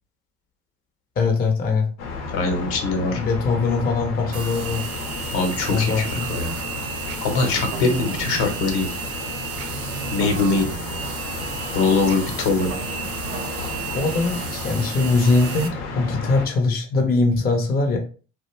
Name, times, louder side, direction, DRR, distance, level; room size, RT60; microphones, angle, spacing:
voice 1, 1.2-1.9 3.1-4.9 5.7-6.3 13.7-18.0, left 3 dB, 20° left, 3 dB, 0.5 m, -22 dB
sound 1, 2.0-16.5, left 3 dB, 90° left, 0.8 m, -33 dB
voice 2, 2.3-3.2 5.3-6.6 7.2-8.9 10.1-10.7 11.7-12.7, left 3 dB, 60° left, 5 dB, 0.9 m, -22 dB
sound 2, 4.3-15.7, right 7 dB, 35° right, 0.4 m, -34 dB
sound 3, 7.1-13.8, right 7 dB, 85° right, 0.7 m, -39 dB
2.3 x 2.1 x 3.0 m, 0.38 s
hypercardioid pair, 75°, 43 cm